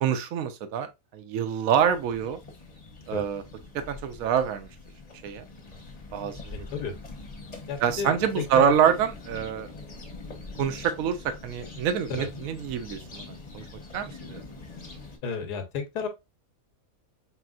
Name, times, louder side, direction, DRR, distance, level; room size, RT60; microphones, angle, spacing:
voice 1, 0.0-2.4 3.1-3.4 3.7-4.7 5.2-5.5 6.1-6.7 7.8-9.7 10.6-13.6 13.9-14.4, right 8 dB, 65° right, 1.0 m, -26 dB
sound 1, 1.7-15.2, left 3 dB, 30° left, 0.8 m, -44 dB
voice 2, 6.5-6.9 7.7-8.7 12.2-12.3 15.2-16.1, left 6 dB, 85° left, 1.5 m, -32 dB
4.3 x 3.4 x 2.4 m
omnidirectional pair, 1.7 m